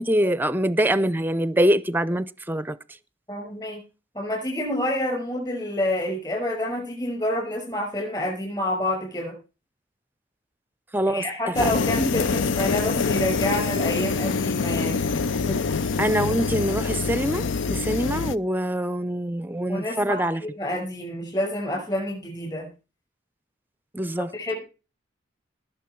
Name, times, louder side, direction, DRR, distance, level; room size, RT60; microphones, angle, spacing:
voice 1, 0.0-2.8 10.9-11.3 11.6-11.7 16.0-20.4 23.9-24.3, right 1 dB, 10° right, 0.6 m, -24 dB
voice 2, 3.3-3.8 4.1-9.4 11.1-15.2 15.5-15.6 19.7-22.7 24.2-24.6, left 1 dB, 25° left, 6.1 m, -28 dB
sound 1, 11.5-18.4, left 4 dB, 80° left, 0.6 m, -25 dB
20.0 x 6.9 x 4.6 m
head